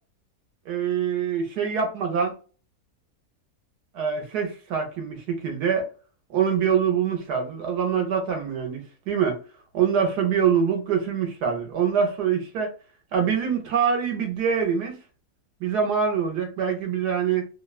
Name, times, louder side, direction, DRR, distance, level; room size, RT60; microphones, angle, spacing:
voice 1, 0.7-2.3 3.9-5.9 6.3-9.4 9.7-12.7 13.1-15.0 15.6-17.5, right 7 dB, 80° right, 1.3 m, -24 dB
3.0 x 2.1 x 2.3 m
omnidirectional pair, 1.7 m